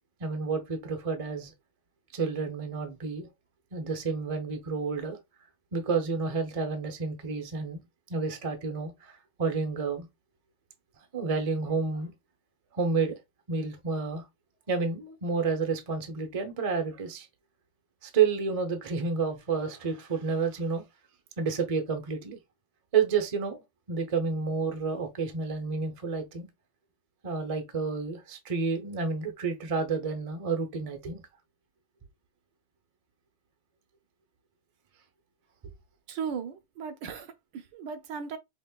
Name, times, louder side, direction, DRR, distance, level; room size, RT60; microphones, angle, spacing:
voice 1, 0.2-1.5 2.1-3.3 3.7-5.2 5.7-7.8 8.1-10.1 11.1-12.1 12.7-13.1 13.5-14.2 14.7-17.3 18.0-20.8 21.4-22.4 22.9-23.6 23.9-26.5 27.2-31.2, right 5 dB, 35° right, 0.5 m, -30 dB
voice 2, 36.1-38.4, right 6 dB, 75° right, 1.4 m, -37 dB
5.2 x 2.9 x 2.2 m
omnidirectional pair, 2.0 m